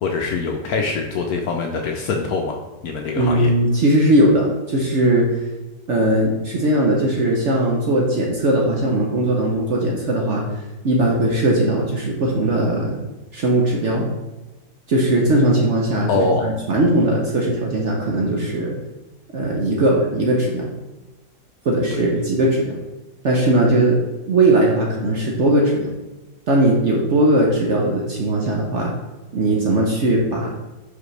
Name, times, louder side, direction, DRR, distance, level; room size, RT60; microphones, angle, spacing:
voice 1, 0.0-2.6 2.8-3.5 16.1-16.5 21.9-22.0, left 4 dB, 70° left, 2 dB, 0.9 m, -23 dB
voice 2, 3.2-5.3 5.9-10.5 10.8-13.0 13.3-14.1 14.9-18.8 19.3-20.7 21.6-22.8 23.2-24.0 24.3-25.9 26.5-28.9 29.3-30.5, right 1 dB, 55° right, -1 dB, 0.8 m, -19 dB
5.7 x 5.0 x 3.2 m, 1.1 s
omnidirectional pair, 1.9 m